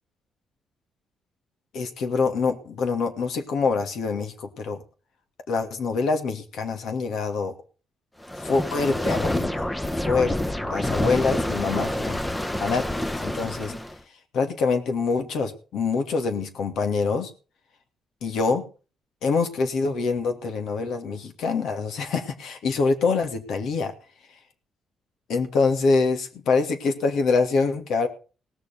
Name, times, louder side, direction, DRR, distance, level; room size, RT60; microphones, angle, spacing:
voice 1, 1.7-4.8 5.5-7.6 8.4-9.7 10.0-10.4 10.6-12.2 12.5-13.7 14.3-17.3 18.2-18.7 19.2-23.9 25.3-28.1, left 4 dB, 75° left, 6 dB, 2.5 m, -25 dB
sound 1, 8.2-14.0, left 1 dB, 10° left, 0.9 m, -27 dB
17.5 x 6.9 x 6.8 m, 0.37 s
cardioid pair, 90°, 0 cm